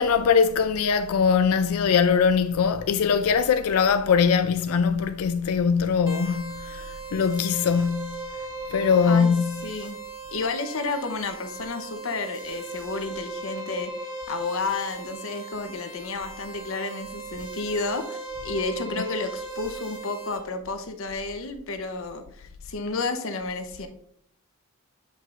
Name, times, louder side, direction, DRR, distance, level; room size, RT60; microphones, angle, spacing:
voice 1, 0.0-8.2 8.7-9.7 18.9-19.0, left 6 dB, 85° left, 0.4 m, -22 dB
sound 1, 6.1-20.4, right 3 dB, 15° right, 2.5 m, -38 dB
voice 2, 9.6-10.0 10.3-18.2 18.4-23.9, left 3 dB, 65° left, 0.8 m, -31 dB
7.6 x 5.4 x 2.5 m
head